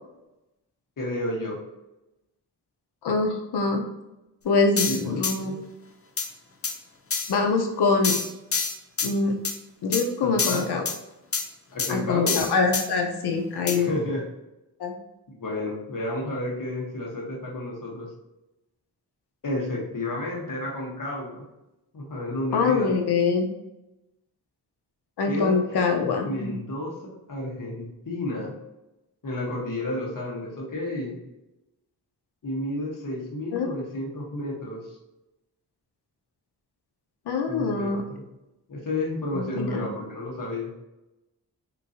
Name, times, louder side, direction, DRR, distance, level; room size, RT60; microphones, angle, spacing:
voice 1, 1.0-1.6 4.9-5.6 10.2-10.7 11.7-12.4 13.7-14.2 15.3-18.1 19.4-21.5 21.9-22.9 25.3-28.5 29.2-31.2 32.4-35.0 37.5-38.2 38.7-40.7, left 1 dB, 50° left, -2 dB, 1.3 m, -31 dB
voice 2, 3.0-3.8 4.4-5.5 7.3-8.2 9.0-9.4 9.8-10.8 11.9-13.9 14.8-15.0 22.5-23.5 25.2-26.5 33.5-33.7 37.3-38.0 39.3-39.9, left 4 dB, 70° left, 2 dB, 0.7 m, -24 dB
sound 1, 4.8-5.4 6.2-6.3 6.6-6.8 7.1-7.3 8.0-9.1 9.4-9.6 9.9-10.0 10.4-11.0 11.3-11.5 11.8-11.9 12.3-12.9 13.7-13.8, left 5 dB, 35° left, 0.6 m, -26 dB
3.7 x 2.9 x 2.7 m, 0.95 s
cardioid pair, 70°, 40 cm